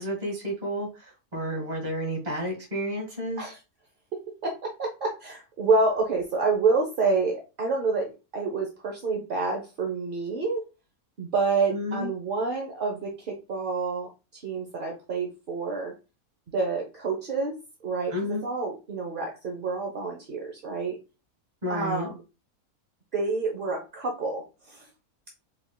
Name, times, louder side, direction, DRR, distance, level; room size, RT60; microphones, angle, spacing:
voice 1, 0.0-3.5 11.7-12.1 18.1-18.4 21.6-22.1, equal, 30° right, -2 dB, 1.7 m, -31 dB
voice 2, 4.1-10.6 11.2-15.9 16.5-17.6 17.8-21.0 21.7-22.2 23.1-24.9, right 3 dB, 50° right, 1 dB, 0.7 m, -28 dB
4.6 x 3.6 x 2.2 m, 0.30 s
omnidirectional pair, 1.6 m